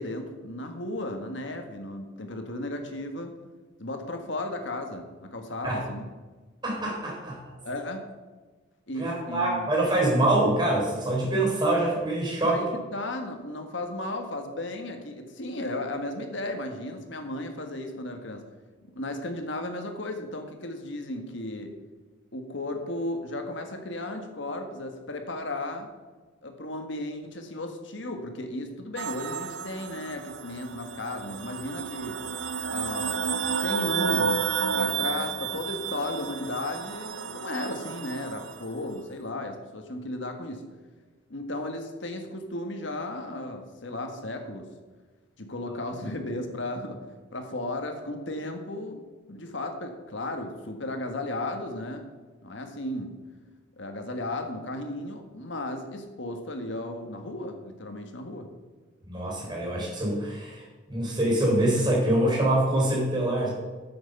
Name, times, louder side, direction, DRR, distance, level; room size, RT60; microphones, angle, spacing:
voice 1, 0.0-3.4 3.8-6.1 7.6-8.0 8.9-9.7 12.5-18.4 18.9-21.7 22.3-25.9 26.4-32.2 32.6-33.2 33.6-40.6 41.3-44.7 45.4-47.0 47.3-52.0 52.4-53.1 53.8-58.5, left 1 dB, 70° left, 5 dB, 1.6 m, -35 dB
voice 2, 6.6-7.4 9.0-12.6 59.1-63.5, right 1 dB, 20° right, -3 dB, 3.8 m, -25 dB
sound 1, 29.0-38.7, right 6 dB, 70° right, 0.6 m, -31 dB
9.4 x 7.9 x 6.7 m, 1.3 s
head